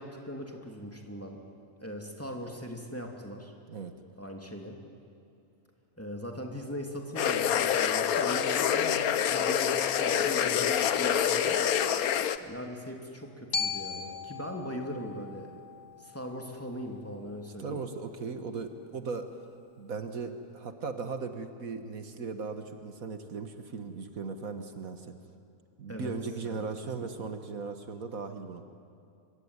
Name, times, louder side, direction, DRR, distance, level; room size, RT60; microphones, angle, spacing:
voice 1, 0.0-1.4 1.8-3.5 4.2-4.8 6.0-11.6 12.4-15.6 16.0-17.8 25.9-26.1 26.4-26.6 27.2-27.3, equal, 10° left, 2 dB, 2.7 m, -40 dB
sound 1, 7.2-12.4, left 9 dB, 85° left, 1.3 m, -26 dB
Glockenspiel, 13.5-17.6, left 5 dB, 55° left, 1.9 m, -38 dB
voice 2, 17.6-19.3 19.8-25.1 25.8-28.6, right 4 dB, 70° right, 7 dB, 1.9 m, -37 dB
25.0 x 24.0 x 9.8 m, 2.5 s
omnidirectional pair, 1.5 m